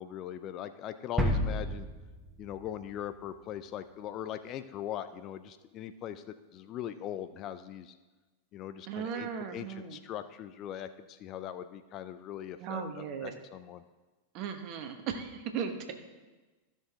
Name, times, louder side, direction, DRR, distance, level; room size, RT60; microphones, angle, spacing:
voice 1, 0.0-1.9 2.4-8.0 8.5-13.8, left 10 dB, 35° left, 12 dB, 0.4 m, -40 dB
sound 1, 1.2-3.0 3.3-3.4, equal, 10° right, 1.2 m, -32 dB
voice 2, 8.9-10.0 12.6-13.3 14.3-15.9, right 7 dB, 40° right, 6 dB, 1.2 m, -37 dB
13.5 x 6.5 x 3.7 m, 1.2 s
figure-of-eight pair, 90°, 0 cm